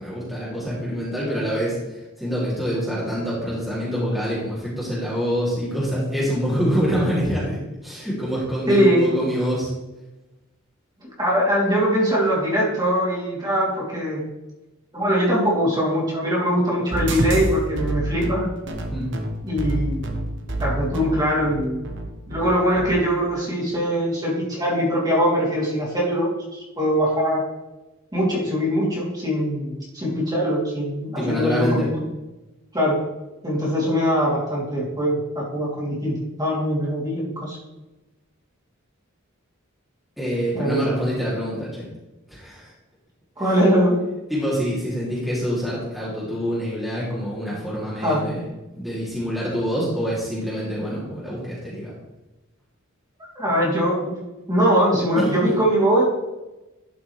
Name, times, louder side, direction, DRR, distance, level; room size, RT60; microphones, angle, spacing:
voice 1, 0.0-9.7 18.9-19.1 31.2-31.9 40.2-41.8 42.3-42.7 44.3-48.4 48.7-51.9 55.2-55.3, equal, ahead, -9 dB, 2.7 m, -26 dB
voice 2, 8.7-9.1 11.2-14.2 14.9-18.5 19.4-20.0 20.6-21.8 22.3-27.4 28.1-32.0 32.7-33.0 33.4-37.6 40.5-40.9 43.4-44.0 48.0-48.2 53.3-54.2 54.5-56.0, equal, 20° right, -6 dB, 3.0 m, -22 dB
sound 1, 16.9-23.0, right 2 dB, 60° right, 1.1 m, -28 dB
12.0 x 6.0 x 3.3 m, 1.0 s
head